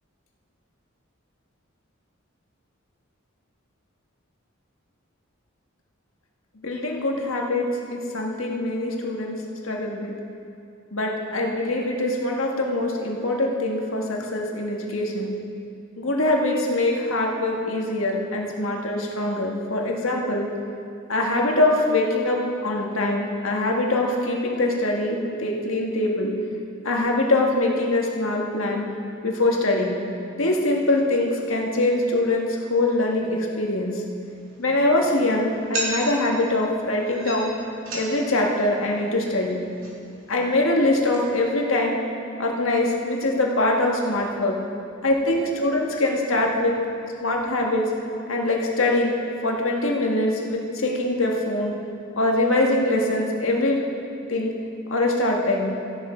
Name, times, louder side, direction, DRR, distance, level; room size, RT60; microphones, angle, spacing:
voice 1, 6.6-10.1 10.9-15.3 16.0-20.5 21.1-26.3 26.8-28.9 29.2-29.9 30.4-34.0 34.6-37.6 37.9-39.6 40.3-42.0 42.4-44.6 45.0-46.8 47.2-47.9 48.3-51.7 52.2-53.8 54.3-54.5 54.9-55.7, left 2 dB, 80° left, 0 dB, 1.6 m, -23 dB
sound 1, 34.2-41.5, right 1 dB, 75° right, 2.9 m, -37 dB
14.0 x 10.5 x 4.4 m, 2.5 s
head